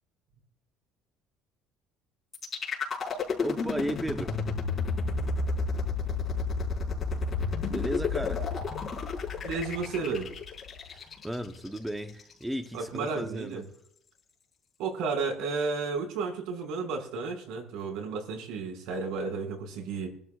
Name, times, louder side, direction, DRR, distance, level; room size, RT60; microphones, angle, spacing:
sound 1, 2.3-12.3, left 4 dB, 25° left, 5.0 m, -31 dB
voice 1, 3.4-4.4 7.7-8.5 10.8-13.6, right 1 dB, 5° right, 0.8 m, -35 dB
voice 2, 9.4-10.3 12.7-13.7 14.8-20.1, right 4 dB, 75° right, 5.3 m, -32 dB
26.0 x 12.5 x 2.4 m
cardioid pair, 130°, 0 cm